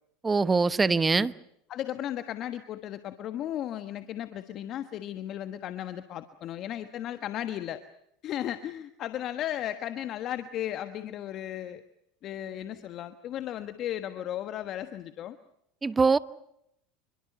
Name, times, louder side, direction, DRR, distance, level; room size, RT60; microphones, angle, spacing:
voice 1, 0.2-1.3 15.8-16.2, right 4 dB, 20° right, 1.0 m, -23 dB
voice 2, 1.7-7.8 8.2-11.8 12.2-15.4, left 11 dB, 50° left, 1.3 m, -35 dB
27.0 x 23.0 x 6.6 m
hypercardioid pair, 90°, 0 cm